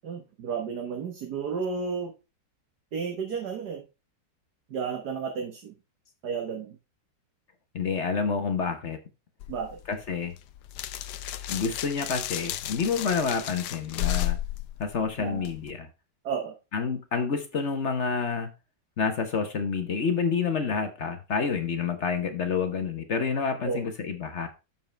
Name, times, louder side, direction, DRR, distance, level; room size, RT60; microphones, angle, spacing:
voice 1, 0.0-2.1 2.9-3.8 4.7-5.7 6.2-6.8 9.5-9.8 15.2-15.5 16.2-16.5 23.6-23.9, right 6 dB, 60° right, 1.8 m, -32 dB
voice 2, 7.7-9.0 9.8-10.4 11.5-14.4 14.8-15.9 16.7-18.5 19.0-24.5, left 5 dB, 50° left, 1.0 m, -28 dB
sound 1, 9.4-15.7, left 13 dB, 70° left, 1.2 m, -34 dB
7.5 x 5.5 x 4.4 m
omnidirectional pair, 2.0 m